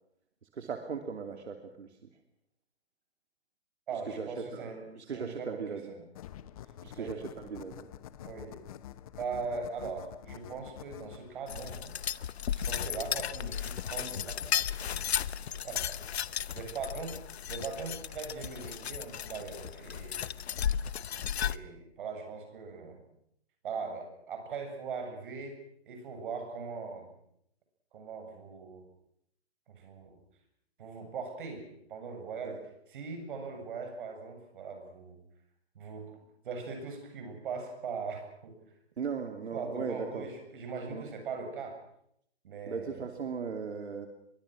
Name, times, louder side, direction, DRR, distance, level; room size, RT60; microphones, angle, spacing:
voice 1, 0.5-1.9 4.1-5.9 6.8-7.9 32.4-32.5 39.0-40.3 40.9-41.0 42.7-44.1, right 6 dB, 80° right, 5 dB, 2.9 m, -38 dB
voice 2, 3.9-6.1 6.9-7.2 8.2-8.6 9.2-11.9 12.5-14.5 15.5-17.2 17.5-20.3 21.3-23.0 23.6-27.1 27.9-28.9 29.7-30.2 30.8-35.2 35.7-38.6 39.5-41.8 42.4-43.0, right 5 dB, 50° right, 5 dB, 7.6 m, -40 dB
sound 1, 6.1-14.7, left 11 dB, 35° left, 1.0 m, -49 dB
sound 2, 11.5-21.6, left 9 dB, 75° left, 0.9 m, -35 dB
25.0 x 23.5 x 6.2 m, 0.72 s
hypercardioid pair, 160°, 33 cm